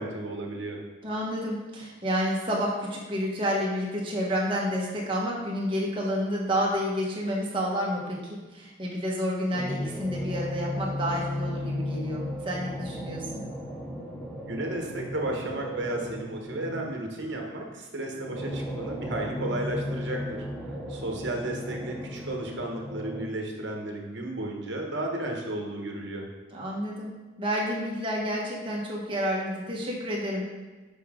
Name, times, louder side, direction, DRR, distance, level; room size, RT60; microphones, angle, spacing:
voice 1, 0.0-0.8 14.5-26.3, right 1 dB, 60° right, 1 dB, 1.1 m, -33 dB
voice 2, 1.0-13.4 26.5-30.4, equal, 25° right, -3 dB, 1.2 m, -30 dB
sound 1, 9.5-17.1 18.0-23.2, left 1 dB, 5° left, 0.8 m, -35 dB
6.9 x 4.9 x 3.7 m, 1.3 s
head